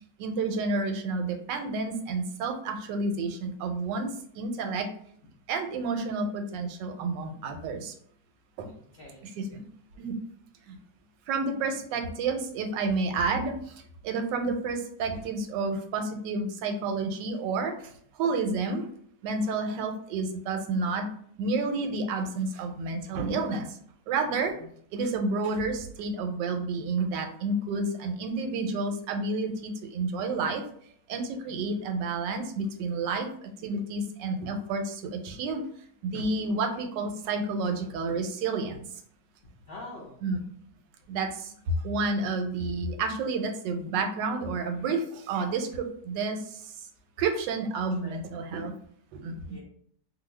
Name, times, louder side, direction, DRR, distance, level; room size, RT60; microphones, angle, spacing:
voice 1, 0.2-4.9 5.5-7.9 8.6-8.7 9.4-9.6 10.0-10.2 10.7-10.8 11.3-13.7 14.0-17.7 18.2-18.9 19.2-21.1 21.4-23.8 24.1-24.5 24.9-30.6 31.1-33.3 33.6-35.6 36.0-38.8 40.2-40.4 41.1-41.5 41.8-46.6 47.2-48.7 49.1-49.6, right 3 dB, 90° right, 5 dB, 1.2 m, -30 dB
voice 2, 8.7-9.3 24.6-24.7 31.4-31.7 39.7-40.2 48.0-48.2 49.4-49.6, left 2 dB, 75° left, -4 dB, 0.5 m, -45 dB
2.7 x 2.5 x 3.1 m, 0.62 s
omnidirectional pair, 1.9 m